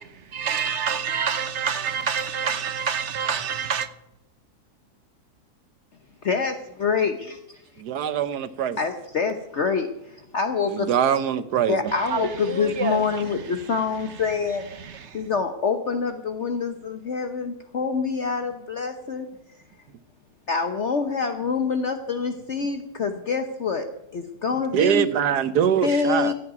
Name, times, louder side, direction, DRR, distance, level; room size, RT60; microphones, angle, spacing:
voice 1, 0.3-3.9 12.1-13.1 14.7-15.2, right 6 dB, 50° right, 1.1 m, -27 dB
voice 2, 6.2-7.4 8.8-10.9 11.7-14.6 15.1-19.3 20.5-23.9 24.1-25.1 25.8-26.3, left 5 dB, 50° left, 1.2 m, -26 dB
voice 3, 7.8-8.8 10.7-11.8 24.7-26.3, right 9 dB, 80° right, 1.4 m, -23 dB
15.5 x 8.7 x 9.4 m
omnidirectional pair, 1.7 m